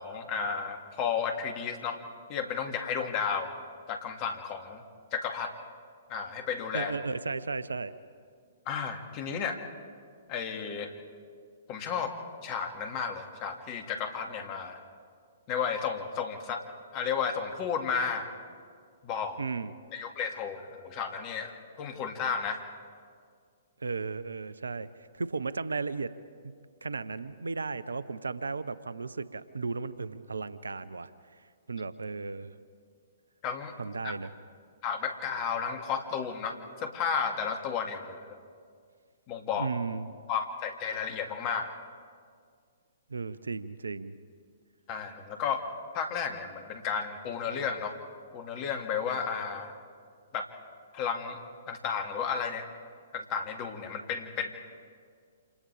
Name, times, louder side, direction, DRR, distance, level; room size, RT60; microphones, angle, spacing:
voice 1, 0.0-2.0 2.3-3.5 3.9-4.8 5.1-5.5 6.1-6.9 8.7-9.6 10.3-10.9 11.7-12.1 12.4-14.8 15.5-16.6 16.9-18.3 19.0-19.4 19.9-22.6 33.4-33.7 34.0-34.1 34.8-38.4 39.3-39.7 40.3-41.7 44.9-45.6 45.9-48.0 48.3-49.7 50.3-50.5 50.9-51.4 51.7-52.6 53.1-54.5, left 6 dB, 35° left, 5 dB, 2.2 m, -33 dB
voice 2, 6.7-7.9 19.4-19.7 23.8-24.9 25.1-26.1 26.4-26.5 26.8-31.1 31.7-32.5 33.8-34.3 39.5-40.1 43.1-44.2, right 4 dB, 80° right, 16 dB, 0.7 m, -35 dB
29.0 x 27.0 x 3.5 m, 2.1 s
figure-of-eight pair, 120°, 0 cm